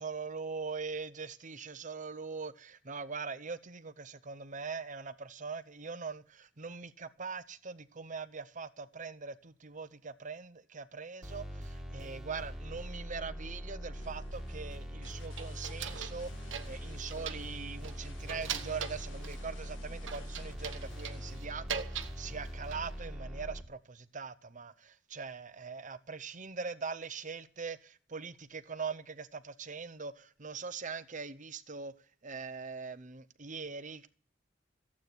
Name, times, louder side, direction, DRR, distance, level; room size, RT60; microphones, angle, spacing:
voice 1, 0.0-31.9 32.2-34.1, right 5 dB, 45° right, 1.0 m, -42 dB
sound 1, 11.2-23.6, equal, 5° right, 2.5 m, -42 dB
sound 2, 13.9-21.4, left 3 dB, 75° left, 2.2 m, -56 dB
sound 3, 15.0-16.2 16.5-17.5 17.8-19.4 20.1-22.2 22.5-23.0, right 8 dB, 85° right, 1.2 m, -41 dB
15.0 x 8.6 x 8.0 m
head